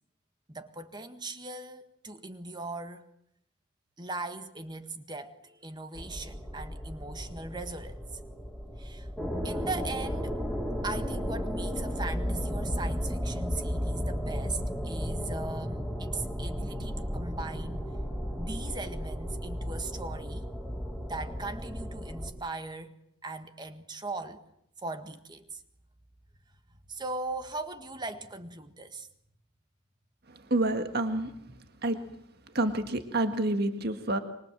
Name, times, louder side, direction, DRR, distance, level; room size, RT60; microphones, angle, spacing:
voice 1, 0.5-3.0 4.0-8.0 8.8-9.1 9.4-10.4 10.8-17.9 18.4-20.5 21.0-22.9 23.2-24.4 24.8-25.6 26.9-29.1, right 3 dB, 20° right, 1.7 m, -39 dB
sound 1, 6.0-22.3, equal, 5° right, 4.3 m, -34 dB
voice 2, 30.5-31.3 31.8-32.0 32.5-34.2, right 2 dB, 50° right, 1.8 m, -28 dB
25.5 x 24.5 x 7.7 m
head